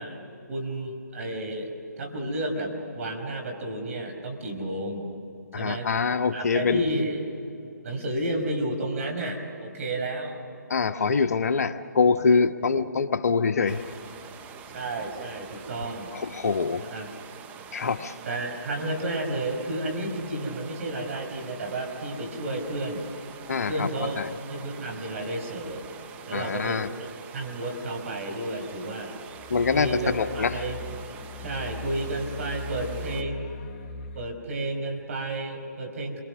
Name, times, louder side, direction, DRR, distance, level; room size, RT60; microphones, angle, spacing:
voice 1, 0.0-1.7 2.0-5.1 5.6-5.9 6.3-7.2 7.8-10.4 14.7-16.1 16.9-17.1 18.3-23.1 23.7-24.2 24.5-25.9 26.3-26.9 27.3-29.2 29.7-30.8 31.4-33.5 34.2-36.2, right 1 dB, 45° right, 3 dB, 5.3 m, -31 dB
voice 2, 5.5-6.9 10.7-13.9 16.1-16.8 17.7-18.1 23.5-23.9 24.2-24.3 26.3-26.9 29.5-30.6, left 5 dB, 55° left, 9 dB, 1.1 m, -24 dB
sound 1, 13.7-33.2, right 7 dB, 15° right, 0.7 m, -45 dB
sound 2, 29.3-34.3, left 2 dB, 30° left, 0.8 m, -39 dB
29.0 x 24.0 x 6.2 m, 2.9 s
figure-of-eight pair, 145°, 10 cm